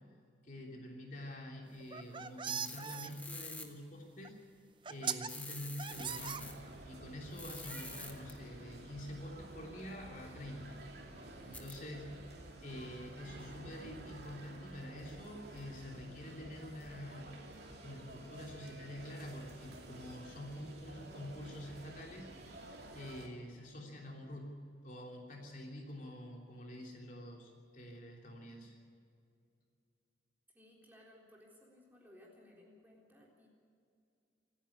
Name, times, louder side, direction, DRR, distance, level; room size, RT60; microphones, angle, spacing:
voice 1, 0.4-4.4 4.9-6.6 6.9-10.8 11.4-12.2 12.6-17.3 17.8-28.8, left 1 dB, 45° left, 0 dB, 3.1 m, -47 dB
sound 1, 1.8-3.1 4.2-4.3 4.8-5.3 5.8-6.9, right 7 dB, 25° right, 0.5 m, -39 dB
sound 2, 2.6-3.7 5.3-6.5 7.3-8.3 11.5-11.7, left 2 dB, 10° left, 1.4 m, -47 dB
sound 3, 5.9-23.3, right 1 dB, 55° right, 3.1 m, -52 dB
voice 2, 30.5-33.5, left 1 dB, 10° right, -3 dB, 3.8 m, -60 dB
26.5 x 10.0 x 9.9 m, 2.4 s
head